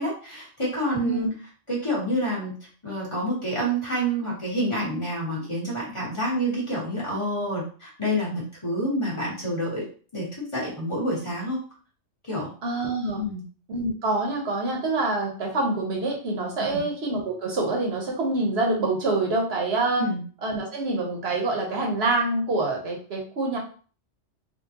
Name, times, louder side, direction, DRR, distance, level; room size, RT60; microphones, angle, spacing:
voice 1, 0.0-1.4 1.7-2.5 2.8-9.9 10.1-11.6 12.3-12.5 13.2-13.4 16.6-16.9 20.0-20.2, equal, 25° left, -6 dB, 1.3 m, -28 dB
voice 2, 12.6-13.2 13.7-20.0 20.4-23.6, right 2 dB, 65° right, 1 dB, 1.0 m, -26 dB
3.7 x 2.4 x 2.8 m, 0.40 s
omnidirectional pair, 1.2 m